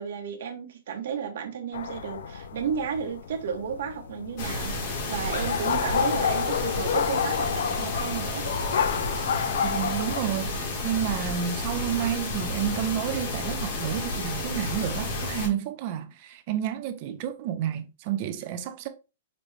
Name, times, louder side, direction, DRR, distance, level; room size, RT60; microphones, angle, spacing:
voice 1, 0.0-8.4, right 7 dB, 55° right, 0.9 m, -33 dB
sound 1, 1.7-10.2, left 7 dB, 70° left, 0.4 m, -30 dB
sound 2, 4.4-15.5, left 2 dB, 35° left, 0.9 m, -31 dB
voice 2, 9.6-18.9, right 10 dB, 30° right, 0.4 m, -30 dB
5.1 x 2.1 x 3.1 m
hypercardioid pair, 180°, 0 cm